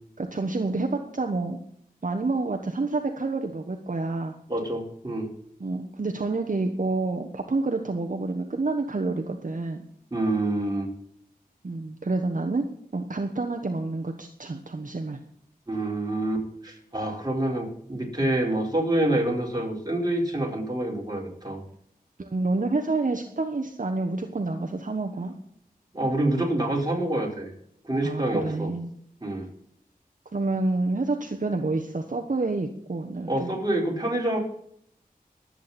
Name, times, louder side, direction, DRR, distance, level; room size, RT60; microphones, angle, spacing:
voice 1, 0.2-1.6 2.0-4.4 5.6-9.8 11.6-12.6 12.9-15.2 22.2-25.3 28.0-28.9 30.3-33.6, right 3 dB, 60° right, 3 dB, 1.2 m, -28 dB
voice 2, 4.5-5.3 10.1-10.9 15.7-21.6 25.9-27.5 27.8-28.7 29.2-29.5 33.3-34.4, right 1 dB, 25° right, -2 dB, 4.7 m, -27 dB
22.0 x 8.6 x 4.3 m, 0.70 s
wide cardioid pair, 50°, 16 cm